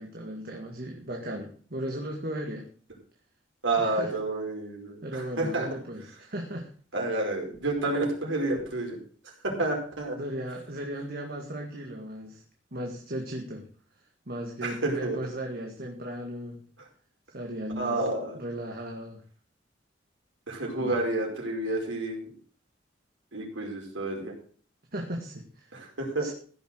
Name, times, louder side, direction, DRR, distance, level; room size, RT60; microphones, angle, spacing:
voice 1, 0.0-2.7 3.8-4.1 5.0-6.7 10.2-12.4 12.7-13.7 14.3-16.6 17.3-18.0 18.3-19.2 20.8-21.0 24.9-25.8 26.2-26.3, right 1 dB, 55° right, 2 dB, 1.9 m, -36 dB
voice 2, 3.6-5.7 6.9-9.0 9.6-10.2 14.6-15.2 17.7-18.4 20.5-22.3 23.3-24.3 25.7-26.3, right 2 dB, 85° right, 0 dB, 5.0 m, -29 dB
15.5 x 6.9 x 6.4 m, 0.44 s
head